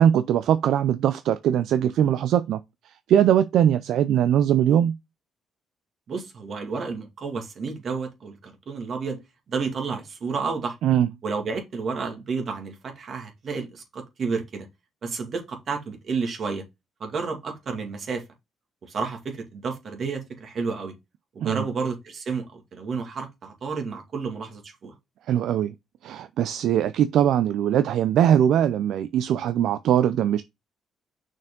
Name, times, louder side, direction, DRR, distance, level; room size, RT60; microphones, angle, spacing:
voice 1, 0.0-2.6 3.1-5.0 10.8-11.1 21.4-21.6 25.3-25.7 26.0-30.4, right 10 dB, 80° right, 0.4 m, -21 dB
voice 2, 6.1-9.2 9.5-10.8 11.2-14.7 15.0-16.6 17.0-18.2 18.9-20.9 21.3-24.9, right 4 dB, 55° right, 2.2 m, -31 dB
6.0 x 4.5 x 3.7 m
cardioid pair, 90°, 0 cm